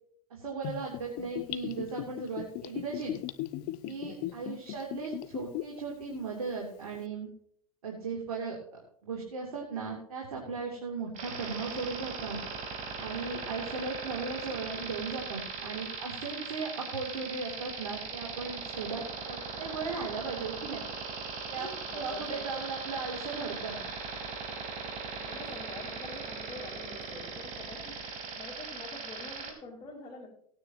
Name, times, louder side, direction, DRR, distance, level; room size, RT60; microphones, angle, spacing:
voice 1, 0.3-3.1 3.8-7.3 7.8-12.4 13.0-20.8 21.5-23.8, right 4 dB, 90° right, -2 dB, 3.0 m, -37 dB
Gurgling / Bathtub (filling or washing), 0.6-5.8 6.1-6.2, left 15 dB, 55° left, 0.7 m, -37 dB
voice 2, 4.0-4.4 15.6-15.8 21.6-22.6 25.2-28.0 28.4-30.3, left 3 dB, 25° left, -6 dB, 4.2 m, -46 dB
sound 1, 11.1-29.5, right 5 dB, 45° right, 4.0 m, -39 dB
18.5 x 9.6 x 3.0 m, 0.65 s
hypercardioid pair, 100°, 18 cm